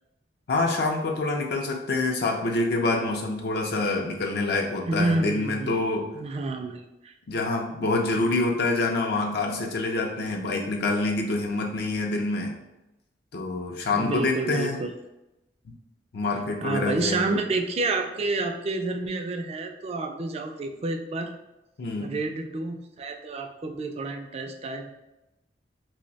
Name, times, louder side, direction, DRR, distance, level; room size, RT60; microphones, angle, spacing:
voice 1, 0.5-6.1 7.3-12.5 13.3-14.8 16.1-17.3 21.8-22.2, left 2 dB, 65° left, 1 dB, 0.4 m, -26 dB
voice 2, 4.9-5.8 6.1-7.1 13.9-14.9 16.2-21.3 22.0-24.9, right 3 dB, 35° right, 5 dB, 0.3 m, -29 dB
2.7 x 2.1 x 3.9 m, 0.94 s
head